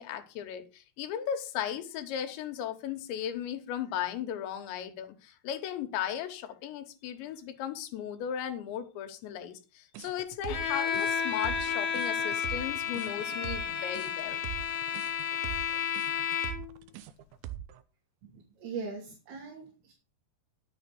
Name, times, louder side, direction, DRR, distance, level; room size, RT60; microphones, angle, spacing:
voice 1, 0.0-14.4, left 9 dB, 85° left, 3.6 m, -36 dB
sound 1, 9.9-17.8, right 12 dB, 85° right, 3.1 m, -42 dB
Bowed string instrument, 10.5-16.8, left 7 dB, 55° left, 2.8 m, -32 dB
voice 2, 18.2-19.9, right 5 dB, 65° right, 4.8 m, -41 dB
11.0 x 9.0 x 5.3 m
omnidirectional pair, 5.1 m